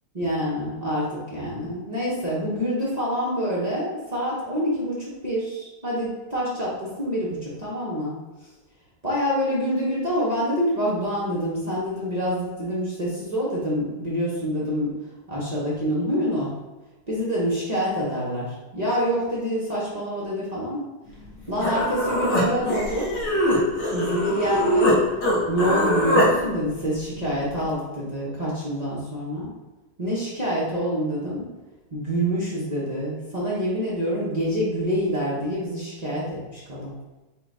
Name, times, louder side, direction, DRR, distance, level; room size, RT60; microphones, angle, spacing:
voice 1, 0.1-8.2 9.0-14.9 15.3-16.5 17.1-20.9 21.5-23.1 23.9-25.0 25.5-29.5 30.0-31.5 31.9-36.9, equal, 40° right, -8 dB, 0.5 m, -26 dB
Human voice, 21.3-21.4 21.6-25.0 25.2-26.3, equal, 60° left, 1.6 m, -22 dB
5.6 x 2.3 x 4.0 m, 1.1 s
omnidirectional pair, 2.2 m